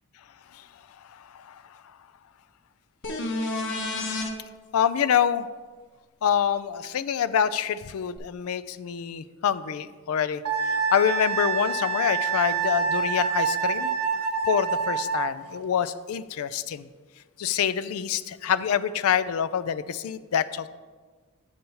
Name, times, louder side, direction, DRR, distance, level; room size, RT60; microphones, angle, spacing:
voice 1, 1.1-1.6 4.7-5.5 6.2-10.4 10.9-13.9 14.5-16.9 17.4-20.7, left 8 dB, 70° left, 15 dB, 0.4 m, -26 dB
sound 1, 3.0-4.3 8.2-8.3, left 2 dB, 55° left, 0.8 m, -29 dB
Wind instrument woodwind instrument, 10.4-15.3, right 5 dB, 85° right, 0.9 m, -26 dB
8.0 x 4.4 x 5.4 m, 1.4 s
head